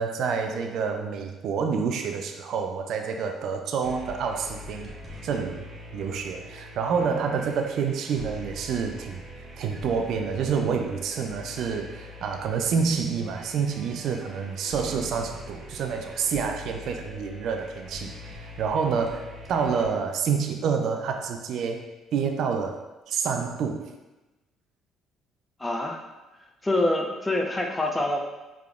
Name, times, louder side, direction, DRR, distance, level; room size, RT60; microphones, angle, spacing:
voice 1, 0.0-4.9 5.2-9.2 9.6-22.8 23.1-23.9, right 6 dB, 65° right, 4 dB, 0.3 m, -28 dB
sound 1, 3.8-19.9, left 1 dB, 40° right, 0.9 m, -43 dB
voice 2, 25.6-26.0 26.6-28.2, left 1 dB, 20° left, 2 dB, 0.6 m, -25 dB
4.6 x 3.6 x 2.3 m, 1.1 s
hypercardioid pair, 55°, 0 cm